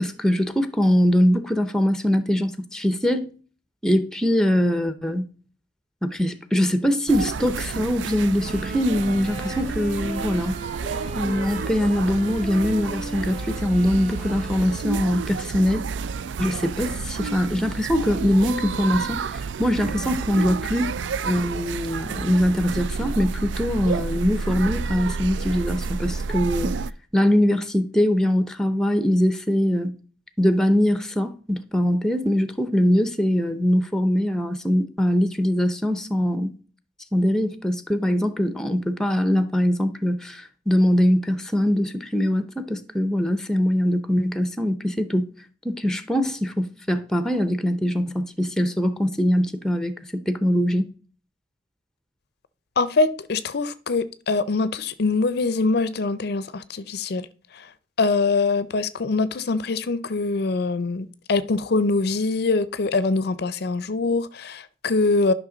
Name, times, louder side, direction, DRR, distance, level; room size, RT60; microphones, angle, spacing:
voice 1, 0.0-3.3 3.8-5.3 6.0-10.6 11.2-15.9 16.4-20.9 21.2-26.8 27.1-29.9 30.4-36.5 37.1-45.3 45.6-50.9, equal, 5° left, 0.6 m, -22 dB
sound 1, 7.1-26.9, right 5 dB, 85° right, 0.4 m, -30 dB
sound 2, 8.4-15.4, right 1 dB, 40° right, 1.7 m, -37 dB
voice 2, 52.8-57.3 57.5-57.7 58.0-65.3, left 3 dB, 60° left, 0.5 m, -23 dB
11.5 x 5.8 x 3.9 m
head